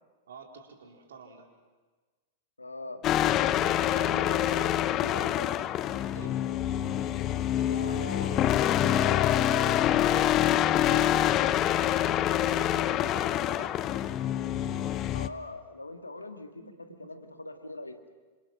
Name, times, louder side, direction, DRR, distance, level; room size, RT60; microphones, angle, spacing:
voice 1, 0.3-1.5 3.9-4.1 6.1-6.4 10.8-14.2 16.6-16.8 17.1-17.2, right 5 dB, 65° right, 2 dB, 4.1 m, -48 dB
voice 2, 2.6-3.0 3.5-5.5 7.7-10.2 15.1-16.6 17.0-17.9, left 2 dB, 85° left, 6 dB, 1.9 m, -41 dB
sound 1, 3.0-15.3, left 11 dB, 35° left, 0.9 m, -26 dB
28.0 x 27.0 x 6.1 m, 1.3 s
figure-of-eight pair, 95°, 0 cm